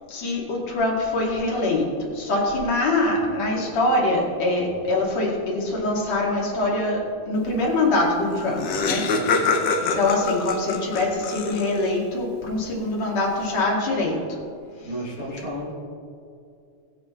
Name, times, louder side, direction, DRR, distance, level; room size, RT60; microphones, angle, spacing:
voice 1, 0.1-9.1 9.8-14.4 14.8-14.9, left 2 dB, 65° left, -3 dB, 3.5 m, -24 dB
Laughter, 8.0-8.1 8.3-12.0, left 4 dB, 80° left, 1.0 m, -25 dB
voice 2, 9.1-9.7 14.8-15.7, equal, 30° left, -9 dB, 2.7 m, -33 dB
21.5 x 7.5 x 3.2 m, 2.5 s
omnidirectional pair, 3.3 m